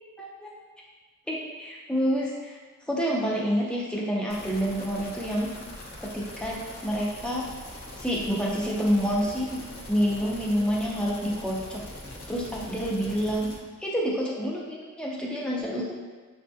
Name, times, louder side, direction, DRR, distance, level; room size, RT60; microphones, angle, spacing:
voice 1, 0.2-0.5 1.3-2.6 2.9-5.5 6.0-7.4 8.0-9.6 9.9-11.8 12.3-13.5 13.8-15.9, equal, 5° left, -5 dB, 0.6 m, -28 dB
sound 1, 4.3-13.6, left 1 dB, 45° left, 0.6 m, -42 dB
7.0 x 2.7 x 2.3 m, 1.4 s
head